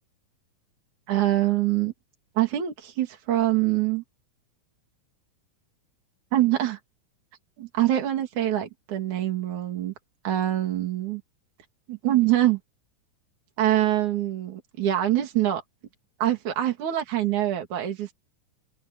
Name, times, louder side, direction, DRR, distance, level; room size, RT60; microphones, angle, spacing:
voice 1, 1.1-1.9 2.4-4.0 6.3-6.8 7.6-9.9 10.2-11.2 11.9-12.6 13.6-15.6 16.2-18.1, right 13 dB, 70° right, 3.9 m, -24 dB
omnidirectional pair, 3.6 m